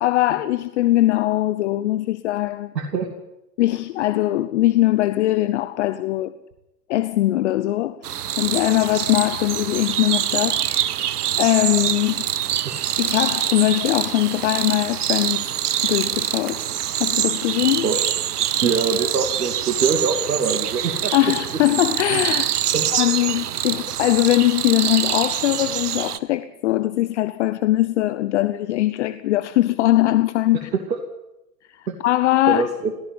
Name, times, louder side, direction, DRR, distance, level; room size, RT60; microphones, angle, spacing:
voice 1, 0.0-2.7 3.6-6.3 6.9-10.7 11.4-12.2 13.0-15.4 15.8-16.7 16.9-17.9 21.1-22.6 22.9-30.7 31.7-32.6, left 15 dB, 45° left, 0.9 m, -21 dB
voice 2, 2.7-3.1 12.6-12.7 17.8-18.0 18.6-21.1 22.7-22.9 30.7-31.0 31.9-32.0 32.5-32.9, right 5 dB, 85° right, 2.8 m, -23 dB
sound 1, 8.0-26.2, right 11 dB, 65° right, 1.2 m, -25 dB
18.0 x 15.0 x 9.7 m
hypercardioid pair, 130°, 50 cm